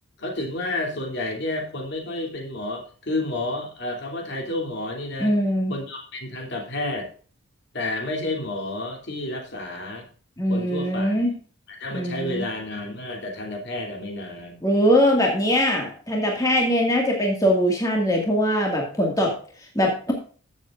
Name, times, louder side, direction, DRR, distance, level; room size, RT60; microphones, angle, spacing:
voice 1, 0.2-5.4 5.7-7.1 7.7-10.1 10.5-11.3 11.8-14.6, left 2 dB, 50° left, 1 dB, 2.9 m, -30 dB
voice 2, 5.2-5.7 10.4-11.3 11.9-12.4 14.6-19.3 19.8-20.1, equal, 15° left, 0 dB, 2.0 m, -21 dB
14.5 x 7.4 x 2.5 m, 0.41 s
head